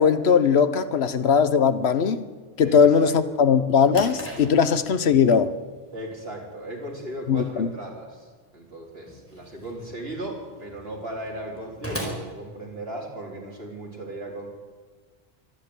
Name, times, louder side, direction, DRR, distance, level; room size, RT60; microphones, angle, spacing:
voice 1, 0.0-2.3 2.6-5.6 7.3-7.7, left 6 dB, 80° left, 1.3 m, -19 dB
voice 2, 2.6-3.1 5.9-14.5, right 1 dB, 70° right, 4.7 m, -37 dB
Drawer open or close, 3.9-13.3, equal, 10° left, 4.4 m, -41 dB
24.0 x 11.5 x 9.8 m
omnidirectional pair, 1.1 m